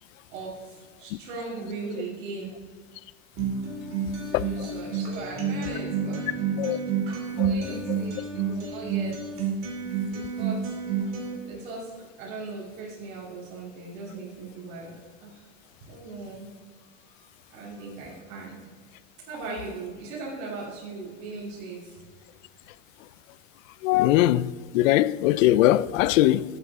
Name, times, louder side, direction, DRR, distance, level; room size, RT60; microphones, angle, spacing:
voice 1, 0.3-2.6 4.2-6.5 6.8-6.9 7.3-9.5 10.1-10.8 11.4-11.9 12.2-14.9 15.2-15.5 15.8-16.5 17.1-17.2 17.5-18.6 19.3-22.0, right 3 dB, 65° right, 3.1 m, -38 dB
Acoustic guitar, 3.4-11.4, right 6 dB, 35° right, 2.5 m, -29 dB
voice 2, 23.8-26.4, left 14 dB, 80° left, 0.5 m, -21 dB
14.5 x 7.9 x 3.6 m
supercardioid pair, 160°, 40 cm